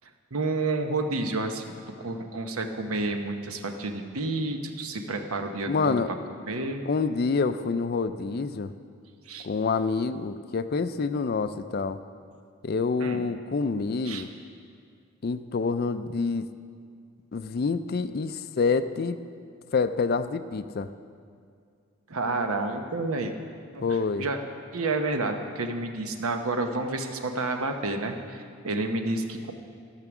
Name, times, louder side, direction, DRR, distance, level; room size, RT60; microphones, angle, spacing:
voice 1, 0.3-1.6 2.0-6.0 6.5-6.8 9.3-9.5 13.0-13.2 14.0-14.2 22.1-23.3 23.7-24.4 24.7-29.5, right 2 dB, 80° right, 5 dB, 0.9 m, -30 dB
voice 2, 5.6-6.1 6.9-8.7 9.4-12.0 12.6-14.3 15.2-16.5 17.3-19.2 19.7-20.9 23.8-24.3, left 4 dB, 45° left, 12 dB, 0.4 m, -27 dB
14.5 x 6.7 x 6.0 m, 2.3 s
head